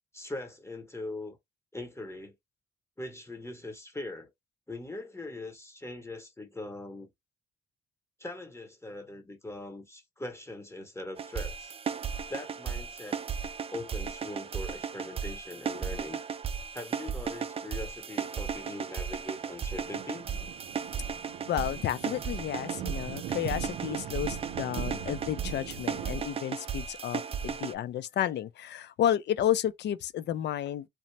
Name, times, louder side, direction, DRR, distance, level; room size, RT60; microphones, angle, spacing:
voice 1, 0.1-1.4 1.7-2.3 3.0-4.3 4.7-7.1 8.2-11.8 12.3-13.2 13.7-16.2 16.7-20.3, left 2 dB, 15° left, 0.9 m, -41 dB
sound 1, 11.2-27.7, right 6 dB, 30° right, 0.4 m, -35 dB
Thunder, 19.4-26.2, right 10 dB, 85° right, 0.5 m, -42 dB
voice 2, 21.5-30.9, left 11 dB, 60° left, 0.4 m, -31 dB
2.8 x 2.0 x 3.2 m
cardioid pair, 90°, 20 cm